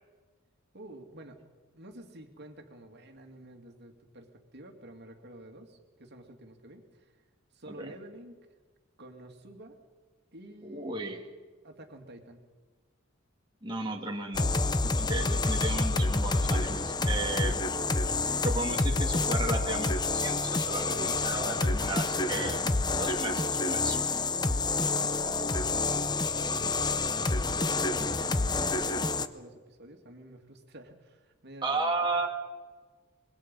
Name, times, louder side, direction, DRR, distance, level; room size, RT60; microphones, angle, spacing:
voice 1, 0.7-1.5 1.7-7.2 7.5-8.3 9.0-9.8 10.3-11.2 11.6-12.4 14.7-15.3 24.4-32.1, right 1 dB, 55° right, 4 dB, 2.6 m, -49 dB
voice 2, 10.6-11.2 13.6-14.5 15.0-17.7 18.4-24.0 31.6-32.3, right 3 dB, 25° right, 0 dB, 2.1 m, -34 dB
sound 1, 14.3-29.3, left 3 dB, 20° left, 0.8 m, -28 dB
25.0 x 22.0 x 5.5 m, 1.4 s
head